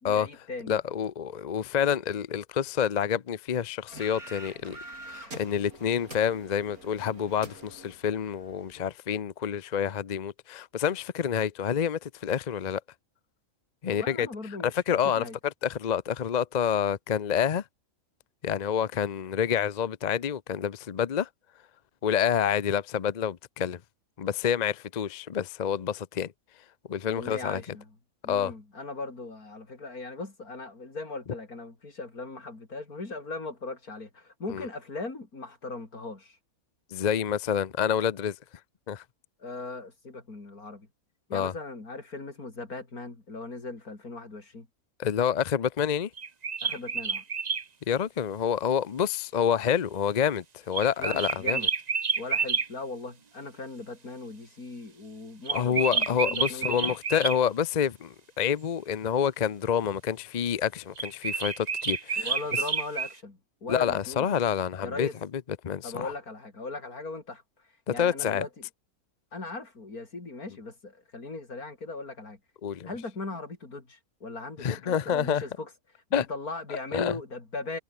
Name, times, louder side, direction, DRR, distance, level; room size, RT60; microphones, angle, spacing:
voice 1, 0.0-0.8 13.9-15.4 27.1-27.9 28.2-36.4 39.4-40.9 41.3-44.7 46.6-47.2 51.0-51.7 52.2-56.9 62.2-64.4 64.8-65.1 65.8-67.4 67.9-68.7 69.3-72.4 72.9-75.7 76.1-77.8, left 3 dB, 75° left, 4.7 m, -39 dB
voice 2, 0.7-4.8 5.1-12.8 13.8-14.3 14.6-15.2 15.6-17.6 18.4-21.3 22.0-23.8 24.2-26.3 26.9-27.8 28.3-28.5 34.5-34.7 36.9-38.4 38.9-39.0 41.3-41.5 45.0-46.1 47.9-51.7 55.5-62.3 63.7-66.1 67.9-68.5 72.6-72.9 74.6-75.4 76.1-76.3 76.7-77.1, left 8 dB, 45° left, 0.6 m, -28 dB
sound 1, 3.9-8.8, right 2 dB, 75° right, 8.5 m, -46 dB
sound 2, 46.2-47.6 50.7-52.7 55.5-57.4 61.0-63.1, right 5 dB, 35° right, 0.8 m, -29 dB
omnidirectional pair, 1.6 m